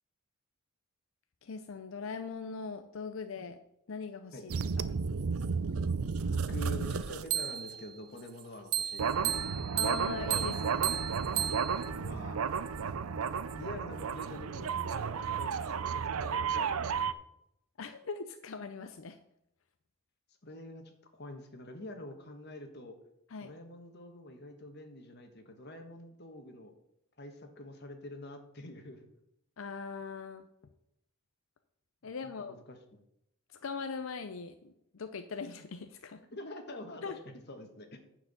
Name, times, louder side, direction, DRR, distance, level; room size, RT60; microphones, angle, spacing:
voice 1, 1.4-3.6 3.9-4.5 4.8-4.9 9.8-10.9 17.8-19.2 23.3-23.5 29.6-30.4 32.0-32.6 33.5-36.2 37.0-37.2, left 5 dB, 65° left, 8 dB, 0.5 m, -40 dB
sound 1, 4.5-7.8 8.7-17.1, right 6 dB, 80° right, 0.5 m, -32 dB
voice 2, 6.3-9.4 11.9-12.5 13.5-17.0 20.4-23.0 23.4-26.7 27.2-29.1 32.0-33.0 36.3-37.2 37.5-38.0, left 1 dB, 50° left, 5 dB, 1.4 m, -46 dB
9.8 x 4.8 x 7.0 m, 0.80 s
head